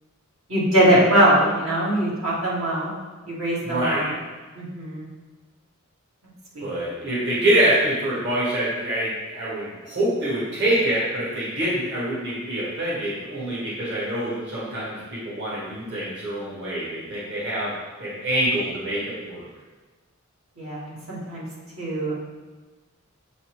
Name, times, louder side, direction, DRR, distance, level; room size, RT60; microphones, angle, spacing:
voice 1, 0.5-2.9 3.3-4.1 4.5-5.0 6.5-6.7 20.6-21.4 21.8-22.1, right 1 dB, 80° right, -8 dB, 1.9 m, -21 dB
voice 2, 3.6-4.1 6.6-17.7 18.0-19.4, right 1 dB, 60° right, -8 dB, 1.7 m, -25 dB
7.3 x 4.1 x 3.1 m, 1.3 s
head